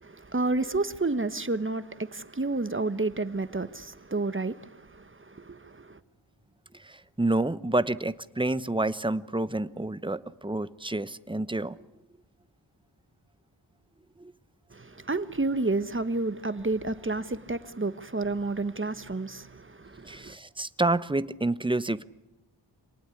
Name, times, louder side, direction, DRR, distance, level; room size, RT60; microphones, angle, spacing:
voice 1, 0.0-6.0 14.7-20.4, right 3 dB, 25° right, 1.4 m, -30 dB
voice 2, 6.8-11.8 14.2-14.3 20.0-22.0, right 2 dB, 10° right, 0.9 m, -29 dB
27.0 x 19.0 x 9.8 m
wide cardioid pair, 65°, 45 cm